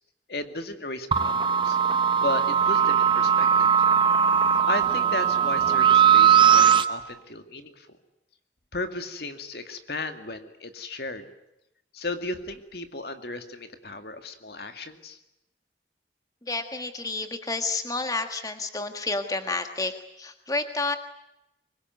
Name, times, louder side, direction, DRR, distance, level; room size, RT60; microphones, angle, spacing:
voice 1, 0.3-1.8 2.2-3.7 4.7-8.0 8.7-11.3 11.9-15.2, left 2 dB, 60° left, 7 dB, 2.2 m, -35 dB
sound 1, 1.1-6.8, right 8 dB, 25° right, 0.9 m, -19 dB
voice 2, 16.4-21.0, left 3 dB, 20° left, 7 dB, 1.6 m, -30 dB
24.5 x 22.0 x 9.4 m, 0.89 s
head